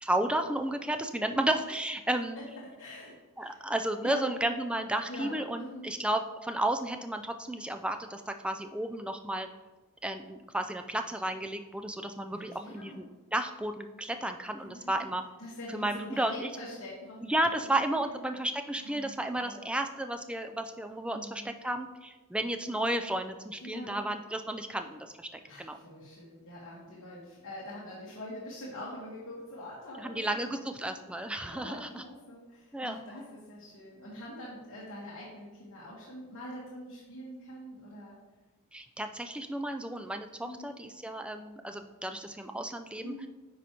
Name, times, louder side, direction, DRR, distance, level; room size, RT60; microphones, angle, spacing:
voice 1, 0.0-2.4 3.4-9.5 10.0-15.2 15.7-16.5 17.2-25.8 30.0-32.0 32.7-33.0 38.7-43.3, right 1 dB, 5° right, 7 dB, 0.3 m, -33 dB
voice 2, 2.3-3.6 4.0-4.2 5.1-5.9 12.3-13.0 14.6-15.1 15.4-18.3 18.7-19.8 21.1-21.5 23.6-24.1 25.4-31.0 31.5-38.2 40.4-40.7 43.0-43.3, left 1 dB, 65° left, -6 dB, 1.3 m, -44 dB
9.2 x 4.9 x 2.9 m, 1.2 s
head